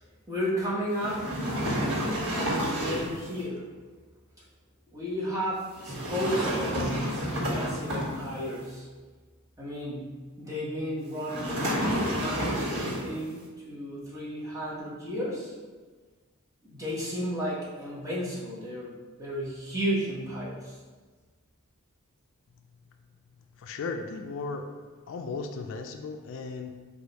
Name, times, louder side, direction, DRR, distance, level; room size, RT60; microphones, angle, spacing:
voice 1, 0.3-1.3 2.4-3.7 4.9-8.9 9.6-15.5 16.6-20.8, equal, 15° right, -7 dB, 1.0 m, -33 dB
sound 1, 1.0-3.2 5.8-8.5 11.2-13.2, equal, 90° right, 1.3 m, -30 dB
voice 2, 23.6-24.7 25.1-26.8, left 4 dB, 60° left, 6 dB, 0.3 m, -36 dB
4.8 x 2.4 x 4.0 m, 1.4 s
head